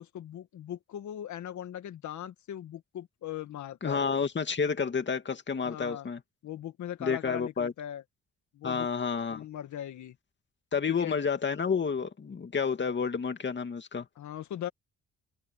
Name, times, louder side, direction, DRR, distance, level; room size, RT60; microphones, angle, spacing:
voice 1, 0.0-4.0 5.6-6.1 6.4-8.0 8.5-8.9 9.3-10.2 10.9-11.2 14.2-14.7, left 11 dB, 70° left, 2.1 m, -39 dB
voice 2, 3.8-6.2 7.0-7.7 8.6-9.4 10.7-14.1, left 5 dB, 35° left, 2.5 m, -30 dB
cardioid pair, 90°, 30 cm